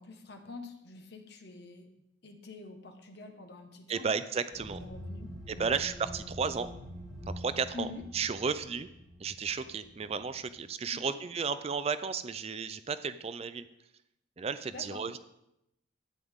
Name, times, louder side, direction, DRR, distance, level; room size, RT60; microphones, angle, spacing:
voice 1, 0.0-1.9 2.2-4.0 4.6-5.8 7.7-8.0 10.9-11.0 14.7-15.0, left 3 dB, 55° left, 5 dB, 1.2 m, -46 dB
voice 2, 3.9-4.8 5.5-6.7 7.3-7.9 8.1-8.9 9.2-13.7 14.4-15.2, right 5 dB, 30° right, 12 dB, 0.4 m, -33 dB
sound 1, 4.5-10.5, equal, ahead, 2.9 m, -45 dB
12.0 x 8.7 x 3.6 m, 0.84 s
head